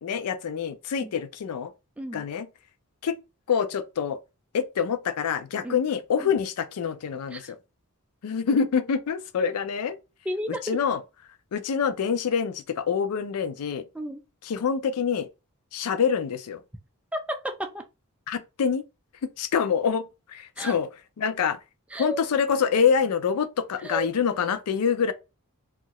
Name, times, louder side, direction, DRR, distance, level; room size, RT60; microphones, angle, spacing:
voice 1, 0.0-1.7 2.1-2.5 3.0-3.1 3.5-4.2 4.5-7.6 8.2-10.0 10.6-11.0 11.5-13.8 14.5-15.3 15.7-16.6 18.3-18.8 19.4-20.9 21.2-21.6 22.0-25.1, left 6 dB, 85° left, 0.4 m, -26 dB
voice 2, 2.0-2.3 5.6-5.8 6.2-6.3 7.3-7.5 10.2-10.8 13.9-14.2 17.1-17.8 20.6-20.8 21.9-22.2 23.8-24.1, equal, 5° right, 0.3 m, -33 dB
2.7 x 2.4 x 2.9 m
head